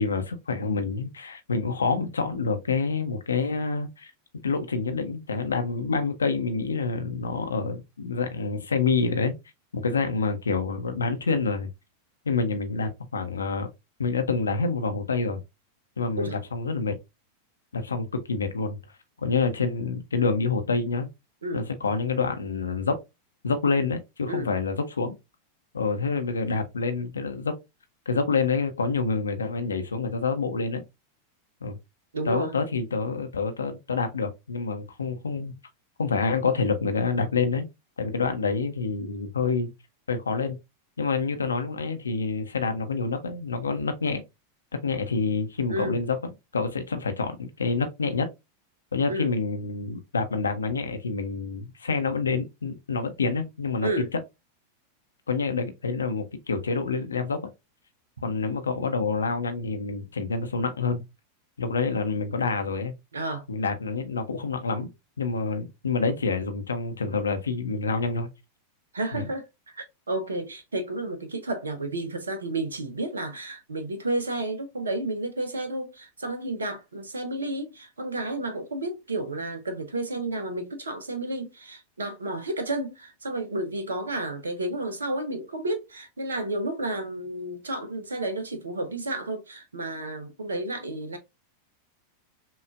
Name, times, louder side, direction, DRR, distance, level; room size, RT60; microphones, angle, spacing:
voice 1, 0.0-4.1 4.4-9.4 9.7-11.7 12.3-13.7 14.0-15.4 16.0-17.0 17.7-18.8 19.2-21.1 21.5-23.0 23.4-25.1 25.7-27.5 28.1-30.8 31.6-31.8 32.3-35.6 36.0-37.7 38.0-39.7 40.1-40.6 41.0-44.2 44.8-46.2 46.5-48.3 48.9-54.1 55.3-57.5 58.2-61.0 61.6-62.9 63.5-64.9 65.2-68.3 69.1-69.3, left 4 dB, 75° left, 0.6 m, -27 dB
voice 2, 32.1-32.5 45.7-46.0 49.1-49.3 53.8-54.1 63.1-63.5 68.9-91.2, right 1 dB, 70° right, 0.7 m, -31 dB
5.8 x 2.4 x 2.3 m
figure-of-eight pair, 90°, 0 cm